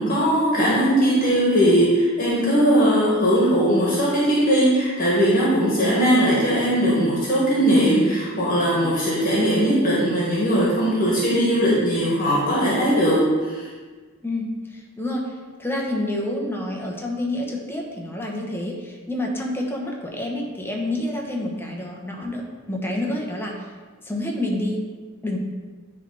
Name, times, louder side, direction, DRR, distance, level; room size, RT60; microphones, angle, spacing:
voice 1, 0.0-13.6, equal, 40° left, -6 dB, 1.6 m, -19 dB
voice 2, 14.2-23.7 24.0-24.9 25.2-25.4, left 1 dB, 10° left, -1 dB, 1.0 m, -28 dB
9.9 x 3.4 x 3.9 m, 1.5 s
head